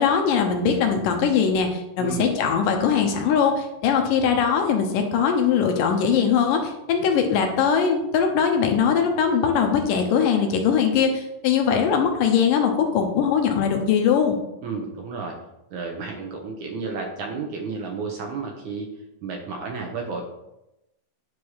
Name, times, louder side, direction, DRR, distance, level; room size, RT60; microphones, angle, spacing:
voice 1, 0.0-14.4, left 7 dB, 70° left, 4 dB, 2.3 m, -21 dB
voice 2, 2.0-2.3 14.6-15.4 15.7-18.9 19.2-20.2, right 4 dB, 70° right, 2 dB, 2.1 m, -32 dB
9.7 x 4.8 x 5.6 m, 0.90 s
omnidirectional pair, 4.3 m